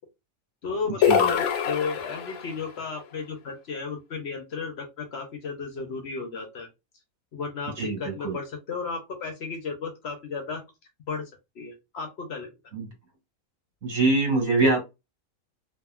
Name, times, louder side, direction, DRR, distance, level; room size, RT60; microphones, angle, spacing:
voice 1, 0.6-6.7 7.3-10.6 11.1-11.3 11.6-12.5, left 4 dB, 60° left, 4 dB, 0.8 m, -34 dB
sound 1, 1.0-2.6, left 7 dB, 85° left, 1.1 m, -24 dB
voice 2, 7.8-8.4 12.7-12.9 13.8-14.8, right 3 dB, 75° right, 1 dB, 1.8 m, -23 dB
2.8 x 2.7 x 2.3 m, 0.24 s
omnidirectional pair, 1.4 m